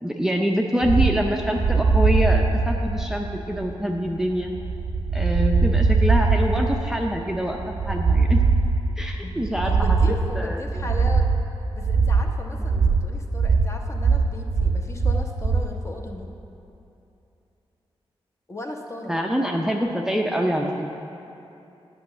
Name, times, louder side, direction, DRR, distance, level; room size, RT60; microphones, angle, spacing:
voice 1, 0.0-4.5 5.1-7.6 7.8-8.4 9.0-10.0 10.4-10.9 12.7-12.9 19.1-21.1, equal, 5° right, 1 dB, 0.5 m, -25 dB
sound 1, 0.8-15.7, right 4 dB, 80° right, 0.7 m, -21 dB
voice 2, 9.2-11.4 11.7-16.3 18.5-19.2, left 2 dB, 30° left, 2 dB, 0.9 m, -36 dB
9.2 x 5.6 x 7.0 m, 2.9 s
wide cardioid pair, 100°, 10 cm